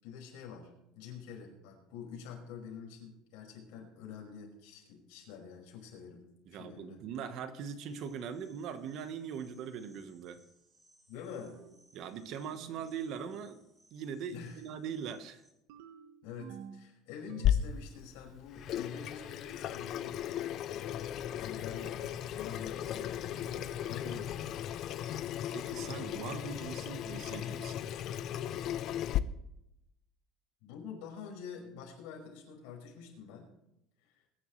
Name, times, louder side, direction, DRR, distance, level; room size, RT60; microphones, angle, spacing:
voice 1, 0.0-6.2 6.5-7.0 11.1-11.6 14.3-14.6 16.2-20.2 20.7-23.5 23.9-24.6 30.6-33.5 34.0-34.2, left 7 dB, 70° left, 1 dB, 5.4 m, -47 dB
voice 2, 6.5-10.4 11.9-15.4 25.5-27.8, right 7 dB, 45° right, 10 dB, 1.1 m, -41 dB
sound 1, 7.8-15.5, right 1 dB, 15° right, 3.6 m, -67 dB
sound 2, 11.3-11.9 12.5-13.0 15.7-16.9 17.3-17.9 18.9-19.4 21.7-22.2 23.3-23.8, right 8 dB, 75° right, 1.2 m, -51 dB
Water tap faucet / Sink (filling or washing), 17.4-29.2, left 11 dB, 40° left, 0.6 m, -36 dB
22.5 x 10.5 x 3.2 m, 0.82 s
cardioid pair, 175°, 0 cm